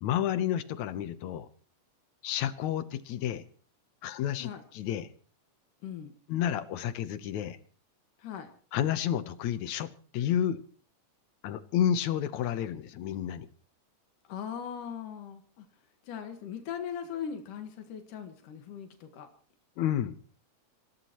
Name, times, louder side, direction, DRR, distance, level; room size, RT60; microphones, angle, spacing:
voice 1, 0.0-1.5 2.2-3.4 4.0-5.1 6.3-7.6 8.7-10.6 11.4-13.5 19.8-20.2, left 10 dB, 70° left, 12 dB, 2.2 m, -30 dB
voice 2, 5.8-6.1 8.2-8.5 14.3-15.7 16.0-19.3, left 8 dB, 85° left, 5 dB, 3.2 m, -39 dB
26.5 x 16.0 x 3.0 m, 0.43 s
omnidirectional pair, 3.6 m